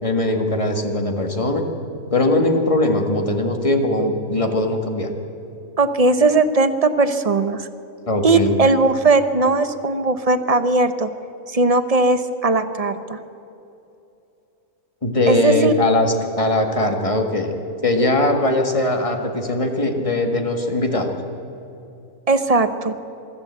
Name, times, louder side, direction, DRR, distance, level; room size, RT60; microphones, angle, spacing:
voice 1, 0.0-1.6 2.1-5.1 8.1-8.6 15.0-17.5 17.8-21.1, left 1 dB, 25° left, 3 dB, 1.9 m, -20 dB
voice 2, 5.8-7.7 8.2-11.1 11.5-13.2 15.3-15.7 22.3-22.9, right 3 dB, 30° right, 10 dB, 0.8 m, -18 dB
23.0 x 13.5 x 8.2 m, 2.8 s
omnidirectional pair, 1.4 m